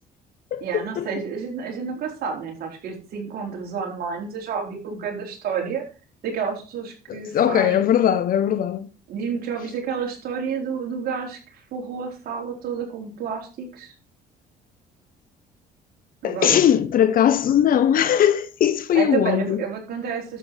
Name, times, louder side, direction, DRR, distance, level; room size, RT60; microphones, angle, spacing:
voice 1, 0.6-5.8 6.2-7.9 9.1-13.9 16.2-16.6 18.9-20.4, right 6 dB, 65° right, 4.3 m, -30 dB
voice 2, 7.1-8.9 16.2-19.6, left 10 dB, 55° left, 1.2 m, -19 dB
11.5 x 7.9 x 4.6 m
cardioid pair, 110°, 17 cm